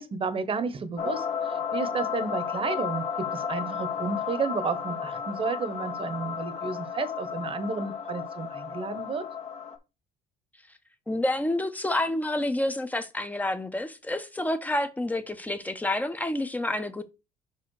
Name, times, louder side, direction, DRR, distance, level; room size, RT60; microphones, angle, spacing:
voice 1, 0.0-9.2, right 5 dB, 30° right, 1.0 m, -32 dB
sound 1, 1.0-9.8, left 7 dB, 40° left, 1.0 m, -33 dB
voice 2, 11.1-17.0, left 1 dB, 10° left, 0.9 m, -29 dB
5.6 x 4.6 x 4.7 m
cardioid pair, 110°, 17 cm